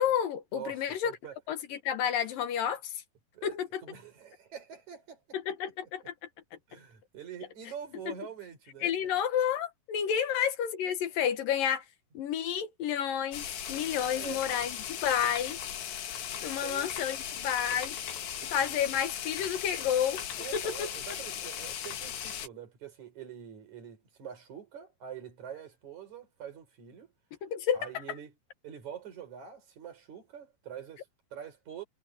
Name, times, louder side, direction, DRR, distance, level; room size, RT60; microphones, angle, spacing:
voice 1, 0.0-1.1 1.5-3.0 3.4-3.8 5.5-6.1 8.1-8.2 8.8-11.8 12.1-15.6 16.4-18.0 18.5-20.2 20.5-20.9 27.4-27.8, left 9 dB, 65° left, 2.7 m, -30 dB
voice 2, 0.5-1.4 3.3-3.6 3.8-5.4 6.7-9.2 14.1-14.4 16.5-16.9 18.3-18.6 20.4-27.1 27.7-28.3 28.6-31.8, right 8 dB, 45° right, 5.8 m, -45 dB
sound 1, 13.3-22.5, left 9 dB, 85° left, 4.5 m, -38 dB
omnidirectional pair, 4.8 m